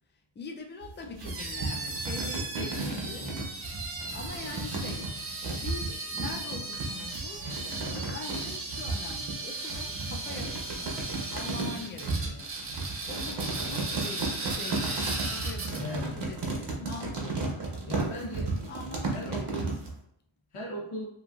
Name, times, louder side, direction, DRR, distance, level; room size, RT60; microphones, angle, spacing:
voice 1, 0.4-3.3 4.1-5.1 5.5-7.5 7.8-11.0 11.3-12.6 13.1-17.7 18.7-19.8, left 4 dB, 25° left, 3 dB, 0.3 m, -43 dB
sound 1, 0.8-19.9, right 3 dB, 55° right, 0.8 m, -34 dB
sound 2, 1.2-16.0, right 3 dB, 30° right, 0.5 m, -37 dB
voice 2, 15.8-16.2 17.9-18.5 19.1-19.7 20.5-21.1, equal, 85° left, -3 dB, 1.1 m, -37 dB
2.9 x 2.4 x 2.4 m, 0.73 s
wide cardioid pair, 115°, 49 cm